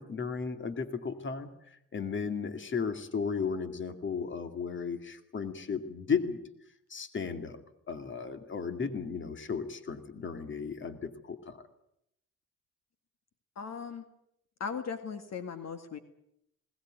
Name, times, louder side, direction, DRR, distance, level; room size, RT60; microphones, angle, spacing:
voice 1, 0.0-1.5 1.9-6.4 6.9-7.6 7.9-11.6, left 5 dB, 40° left, 9 dB, 2.3 m, -35 dB
voice 2, 13.6-14.1 14.6-16.0, left 6 dB, 60° left, 9 dB, 2.0 m, -38 dB
20.5 x 19.0 x 9.2 m, 0.78 s
cardioid pair, 90°, 30 cm